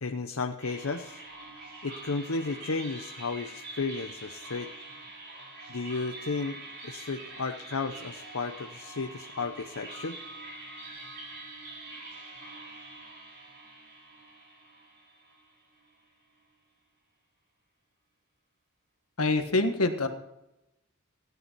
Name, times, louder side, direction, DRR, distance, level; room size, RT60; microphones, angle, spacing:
voice 1, 0.0-1.2 1.8-4.7 5.7-10.2, left 4 dB, 70° left, 5 dB, 0.8 m, -33 dB
sound 1, 0.6-15.9, right 2 dB, 50° right, 5.9 m, -45 dB
voice 2, 19.2-20.1, left 2 dB, 90° left, 7 dB, 1.5 m, -25 dB
16.0 x 11.0 x 4.6 m, 0.92 s
head